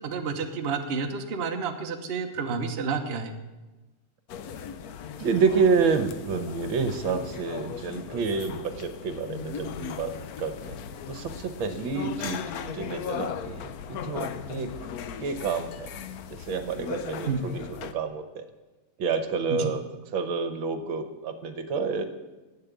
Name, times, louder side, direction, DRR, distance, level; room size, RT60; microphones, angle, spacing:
voice 1, 0.0-3.3 17.3-17.5 19.5-19.7, right 5 dB, 40° right, 5 dB, 0.9 m, -30 dB
sound 1, 4.3-17.9, left 7 dB, 70° left, 0.9 m, -38 dB
voice 2, 5.2-10.1 10.4-10.8 11.1-14.7 15.2-15.9 16.4-18.4 19.0-19.8 20.1-22.0, right 5 dB, 70° right, 9 dB, 1.8 m, -28 dB
11.0 x 8.8 x 8.2 m, 1.2 s
omnidirectional pair, 2.3 m